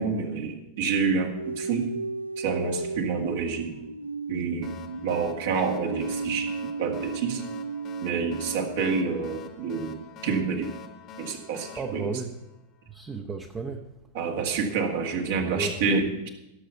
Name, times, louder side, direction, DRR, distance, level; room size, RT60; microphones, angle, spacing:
voice 1, 0.0-1.9 2.4-3.8 4.3-4.7 5.0-6.5 6.8-7.4 8.0-10.0 10.2-10.7 11.2-12.1 14.1-16.3, right 5 dB, 55° right, 3 dB, 1.8 m, -28 dB
sound 1, 1.3-8.9, right 4 dB, 85° right, 0.4 m, -34 dB
sound 2, 4.6-12.9, left 6 dB, 35° left, 1.2 m, -46 dB
voice 2, 11.8-12.4 12.9-13.9 15.5-16.0, right 4 dB, 20° right, 4 dB, 0.9 m, -34 dB
16.5 x 6.8 x 5.7 m, 0.94 s
figure-of-eight pair, 90°, 0 cm